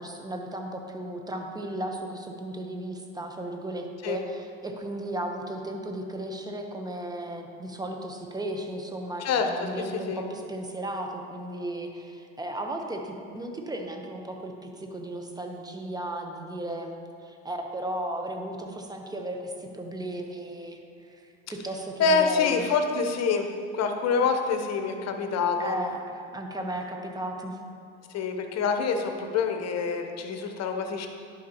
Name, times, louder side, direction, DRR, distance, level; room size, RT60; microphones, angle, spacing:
voice 1, 0.0-22.7 25.6-27.6, right 1 dB, 10° right, 3 dB, 1.0 m, -35 dB
voice 2, 9.2-9.7 10.1-10.2 22.0-23.5 23.7-25.8 28.1-31.1, left 5 dB, 45° left, 5 dB, 1.0 m, -26 dB
11.0 x 5.6 x 3.0 m, 2.4 s
hypercardioid pair, 70°, 35 cm